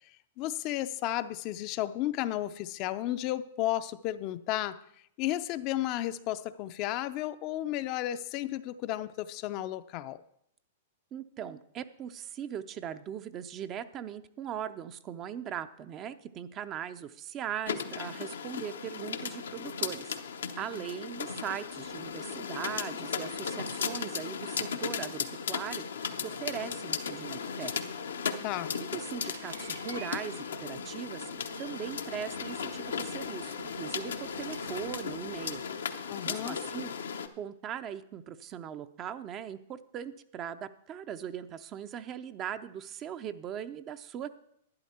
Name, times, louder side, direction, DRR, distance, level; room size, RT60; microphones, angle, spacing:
voice 1, 0.4-4.8 5.2-10.2 20.7-20.8 28.4-28.8 36.1-36.6, left 14 dB, 45° left, 0.5 m, -33 dB
voice 2, 11.1-20.2 20.6-27.7 28.3-28.4 28.9-31.3 31.6-35.6 36.2-36.9 37.4-44.3, right 9 dB, 35° right, 0.6 m, -40 dB
sound 1, 17.7-37.3, left 6 dB, 80° left, 0.8 m, -36 dB
Door, 26.9-35.6, right 5 dB, 85° right, 0.6 m, -51 dB
11.5 x 10.0 x 4.3 m
hypercardioid pair, 115°, 0 cm